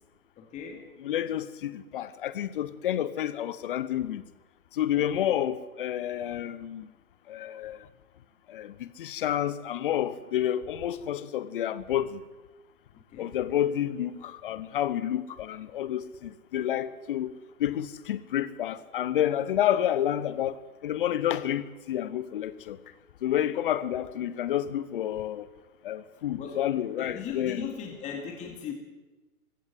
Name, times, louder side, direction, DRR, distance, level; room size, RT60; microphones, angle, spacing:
voice 1, 0.4-0.9 4.9-5.3 13.1-13.4 26.4-26.6 27.0-28.7, left 7 dB, 15° left, 2.4 m, -38 dB
voice 2, 1.0-4.2 4.7-6.9 7.3-7.8 8.5-12.2 13.2-17.3 17.6-22.8 23.2-25.5 25.8-27.7, left 11 dB, 35° left, 1.1 m, -29 dB
22.0 x 16.5 x 7.9 m
figure-of-eight pair, 125°, 44 cm